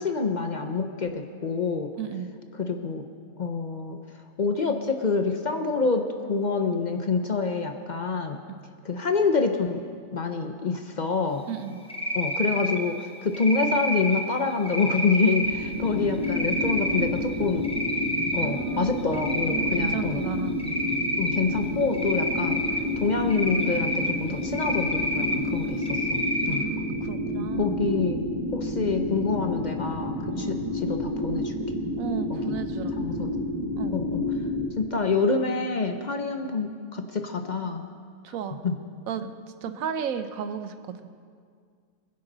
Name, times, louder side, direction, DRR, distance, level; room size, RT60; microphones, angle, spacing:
voice 1, 0.0-1.9 2.5-3.0 3.4-4.0 4.4-8.4 8.8-9.8 10.1-11.5 12.1-17.6 18.3-20.2 21.2-22.6 23.0-26.2 26.5-26.7 27.6-28.2 28.5-31.6 32.3-32.6 33.0-33.3 33.9-34.2 34.8-37.8 38.6-38.8, left 4 dB, 45° left, 5 dB, 0.6 m, -27 dB
voice 2, 2.0-2.3 11.5-11.8 18.3-19.0 19.5-20.6 26.5-27.8 30.3-30.5 32.0-33.0 33.7-34.0 38.2-38.6 39.1-39.3 39.6-41.0, right 8 dB, 75° right, 10 dB, 1.2 m, -33 dB
Cricket, 11.9-12.8 13.3-14.2 14.7-15.5 16.2-17.1 17.5-18.5 18.8-20.0 20.6-21.4 21.9-22.8 23.3-24.1 24.5-25.4 25.8-26.6, equal, 5° left, 0.9 m, -28 dB
sound 1, 15.4-34.7, left 1 dB, 25° right, 1.9 m, -30 dB
21.0 x 10.5 x 3.9 m, 2.1 s
omnidirectional pair, 1.5 m